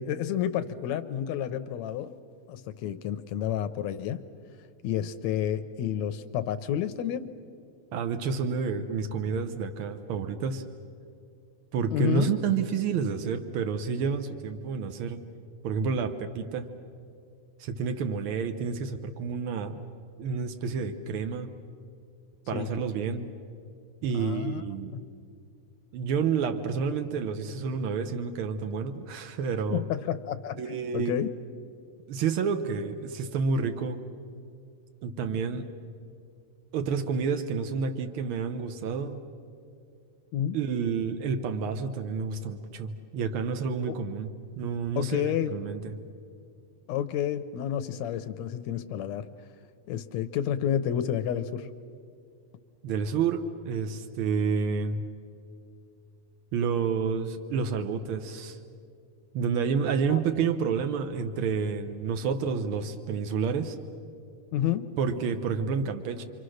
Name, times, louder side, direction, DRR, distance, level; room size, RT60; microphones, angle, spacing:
voice 1, 0.0-2.1 2.5-4.2 4.8-7.3 11.9-12.3 22.5-22.7 24.1-24.6 24.9-25.0 29.7-31.3 40.3-40.6 43.9-44.0 45.0-45.6 46.9-49.3 49.9-51.7 60.1-60.2 64.5-64.9, left 10 dB, 75° left, 10 dB, 1.7 m, -30 dB
voice 2, 7.9-10.6 11.7-15.2 15.6-16.7 17.6-19.8 20.2-21.5 22.5-23.3 24.0-24.9 25.9-29.8 30.6-31.2 32.1-34.0 35.0-35.7 36.7-39.2 40.5-44.3 44.6-46.0 52.8-55.0 56.5-58.6 59.3-63.8 65.0-66.2, right 5 dB, 80° right, 7 dB, 1.2 m, -29 dB
29.5 x 24.5 x 6.5 m, 2.5 s
omnidirectional pair, 3.8 m